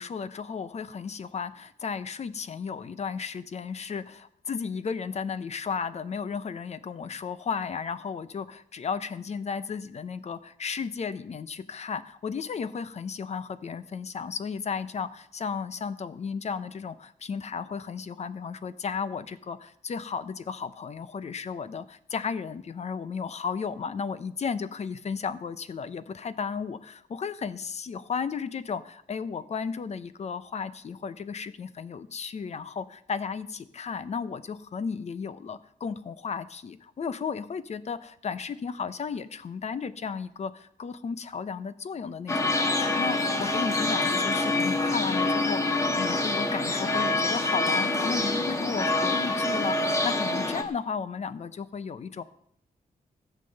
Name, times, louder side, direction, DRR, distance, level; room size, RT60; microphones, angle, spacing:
voice 1, 0.0-52.2, left 6 dB, 45° left, 14 dB, 0.7 m, -34 dB
sound 1, 42.3-50.6, left 2 dB, 20° left, 1.3 m, -26 dB
15.0 x 7.5 x 6.6 m, 0.69 s
wide cardioid pair, 160°, 15 cm